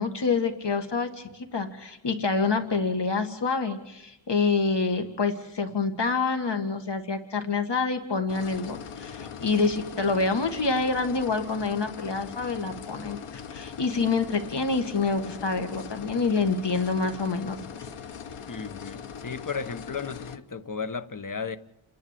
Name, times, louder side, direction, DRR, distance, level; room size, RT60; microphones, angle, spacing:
voice 1, 0.0-17.6, left 4 dB, 55° left, 2.0 m, -27 dB
sound 1, 8.3-20.4, left 7 dB, 85° left, 1.2 m, -40 dB
voice 2, 18.5-21.6, left 5 dB, 40° left, 1.2 m, -34 dB
29.5 x 11.0 x 8.4 m
wide cardioid pair, 100°, 49 cm